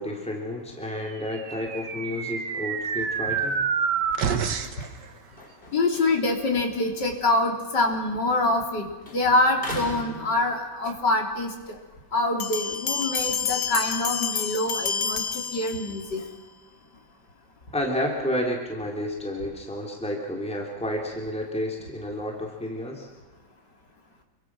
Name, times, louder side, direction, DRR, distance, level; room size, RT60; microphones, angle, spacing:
voice 1, 0.0-3.6 17.7-23.1, left 1 dB, 5° left, -1 dB, 3.5 m, -31 dB
sound 1, 1.3-4.9, right 6 dB, 70° right, 2.0 m, -28 dB
sound 2, 3.1-8.7 9.0-11.0 11.5-14.6, equal, 30° left, 4.4 m, -44 dB
voice 2, 5.7-8.9 9.1-11.8 12.1-16.2, left 2 dB, 70° left, 2 dB, 4.0 m, -25 dB
sound 3, 12.4-16.2, left 6 dB, 45° left, 1.0 m, -29 dB
28.0 x 23.0 x 6.3 m, 1.2 s
omnidirectional pair, 1.9 m